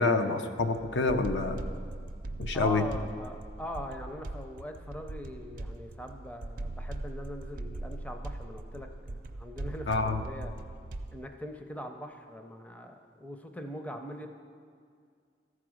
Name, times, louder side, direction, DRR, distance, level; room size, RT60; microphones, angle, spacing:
voice 1, 0.0-1.6 2.4-2.8 9.9-10.2, left 3 dB, 80° left, 7 dB, 0.6 m, -27 dB
sound 1, 0.6-11.3, right 2 dB, 50° right, 0.4 m, -40 dB
voice 2, 2.5-10.6 11.1-14.3, left 1 dB, 10° left, 5 dB, 0.5 m, -42 dB
14.0 x 4.9 x 6.2 m, 2.2 s
head